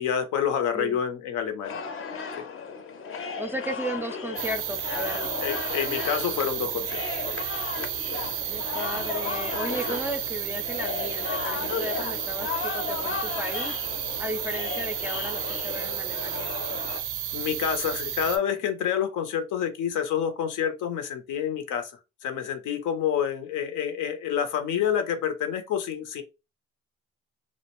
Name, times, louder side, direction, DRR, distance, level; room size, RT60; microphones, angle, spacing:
voice 1, 0.0-1.8 2.3-2.4 5.4-7.4 9.2-10.0 17.3-21.9 22.2-26.2, left 8 dB, 85° left, 0.6 m, -28 dB
sound 1, 1.6-17.0, left 5 dB, 45° left, 0.6 m, -34 dB
voice 2, 3.4-5.3 8.5-13.7 14.2-16.5, right 1 dB, 10° right, 0.3 m, -35 dB
sound 2, 4.4-18.4, right 11 dB, 90° right, 0.5 m, -32 dB
2.4 x 2.0 x 2.9 m
cardioid pair, 90°, 30 cm